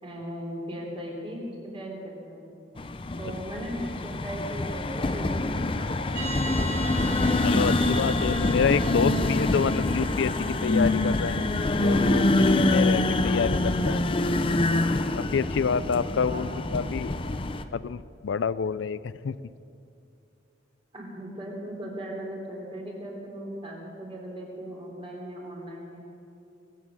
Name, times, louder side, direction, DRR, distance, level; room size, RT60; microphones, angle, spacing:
voice 1, 0.0-2.5 3.2-6.0 16.1-16.4 20.9-26.0, equal, 30° right, -2 dB, 3.6 m, -38 dB
sound 1, 2.8-17.6, left 2 dB, 30° left, 0.5 m, -25 dB
sound 2, 6.1-13.8, right 1 dB, 55° right, 2.9 m, -39 dB
voice 2, 7.4-11.5 11.8-14.2 15.1-17.1 17.7-19.4, left 6 dB, 80° left, 17 dB, 0.4 m, -28 dB
22.5 x 8.4 x 7.5 m, 2.7 s
head